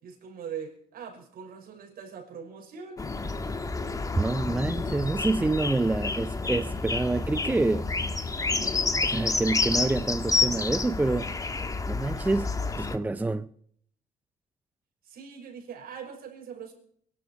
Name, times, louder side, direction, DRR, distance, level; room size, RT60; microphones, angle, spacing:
voice 1, 0.0-3.0 15.0-16.7, right 7 dB, 60° right, 5.9 m, -41 dB
sound 1, 3.0-13.0, left 3 dB, 20° left, 1.4 m, -29 dB
voice 2, 4.2-7.9 9.0-11.3 11.9-13.5, right 2 dB, 10° right, 0.5 m, -27 dB
22.5 x 11.5 x 4.6 m
cardioid pair, 110°, 17 cm